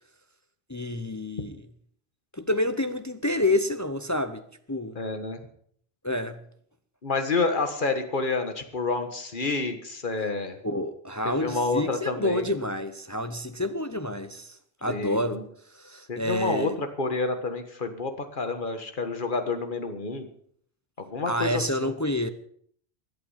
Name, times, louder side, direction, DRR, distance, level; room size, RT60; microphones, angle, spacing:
voice 1, 0.7-1.6 2.3-4.4 4.7-5.0 6.0-6.4 10.6-15.4 15.7-16.8 21.3-22.3, left 1 dB, 20° left, 0.6 m, -28 dB
voice 2, 5.0-5.4 7.0-10.6 11.2-12.5 14.9-15.4 16.1-20.3 21.0-21.9, left 3 dB, 50° left, 1.8 m, -29 dB
17.0 x 11.0 x 5.7 m
omnidirectional pair, 1.1 m